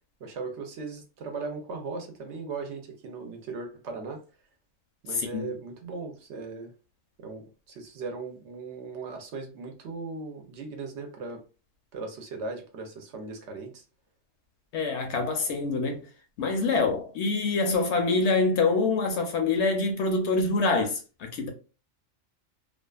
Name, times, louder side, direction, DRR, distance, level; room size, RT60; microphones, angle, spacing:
voice 1, 0.2-4.2 5.0-6.7 7.2-11.4 11.9-13.8, right 4 dB, 65° right, 0.8 m, -38 dB
voice 2, 5.1-5.5 14.7-16.0 16.4-21.5, left 3 dB, 65° left, 0.8 m, -25 dB
2.5 x 2.3 x 2.2 m
omnidirectional pair, 1.3 m